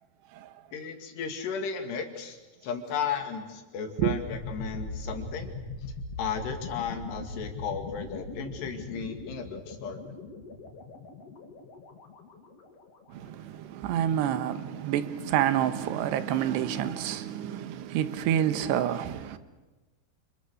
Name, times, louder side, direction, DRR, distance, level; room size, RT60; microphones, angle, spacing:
voice 1, 0.7-5.5 6.2-10.2, left 6 dB, 75° left, 4.5 m, -35 dB
sound 1, 4.2-13.1, left 3 dB, 40° left, 3.3 m, -40 dB
voice 2, 13.1-19.4, right 10 dB, 80° right, 3.3 m, -28 dB
29.0 x 28.0 x 6.6 m
omnidirectional pair, 5.0 m